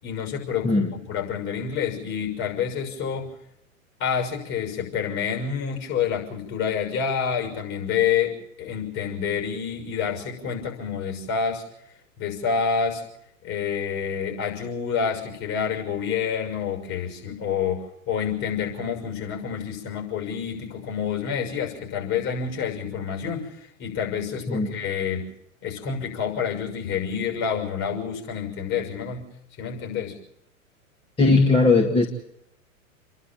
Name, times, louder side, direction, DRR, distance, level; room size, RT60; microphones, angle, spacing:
voice 1, 0.0-3.3 4.0-11.6 12.2-13.0 13.4-25.2 25.6-29.3 29.6-30.2, left 7 dB, 40° left, 2 dB, 6.4 m, -28 dB
voice 2, 31.2-32.1, left 3 dB, 15° left, 1 dB, 2.0 m, -18 dB
28.5 x 11.5 x 9.1 m, 0.79 s
figure-of-eight pair, 100°, 42 cm